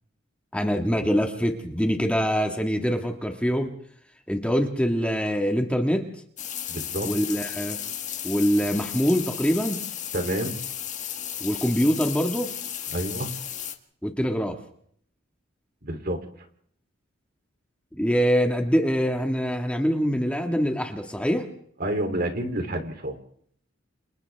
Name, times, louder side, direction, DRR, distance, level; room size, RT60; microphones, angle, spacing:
voice 1, 0.5-3.7 4.3-6.1 7.0-7.8 8.2-9.8 11.4-12.6 14.0-14.6 17.9-21.5, equal, 5° left, 3 dB, 1.9 m, -24 dB
sound 1, 6.4-13.7, left 10 dB, 40° left, 1.6 m, -34 dB
voice 2, 6.7-7.1 10.1-10.6 12.9-13.3 15.8-16.2 21.8-23.2, right 1 dB, 50° right, 6 dB, 3.3 m, -28 dB
30.0 x 28.5 x 3.6 m, 0.63 s
head